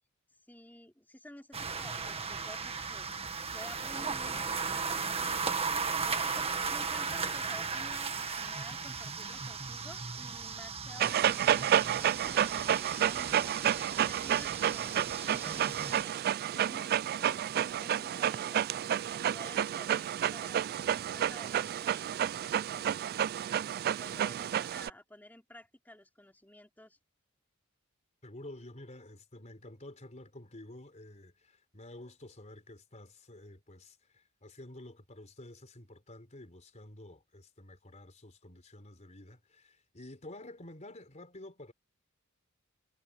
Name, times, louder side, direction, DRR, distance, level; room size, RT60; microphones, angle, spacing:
voice 1, 0.4-3.1 3.5-13.5 14.0-17.4 17.8-18.6 19.1-20.6 21.1-22.0 22.7-23.0 24.0-27.0, left 1 dB, 10° left, 3.1 m, -52 dB
sound 1, 1.5-16.0, right 5 dB, 30° right, 1.6 m, -36 dB
Dog, 11.0-24.9, right 10 dB, 45° right, 0.3 m, -30 dB
voice 2, 28.2-41.7, left 1 dB, 35° left, 4.0 m, -50 dB
head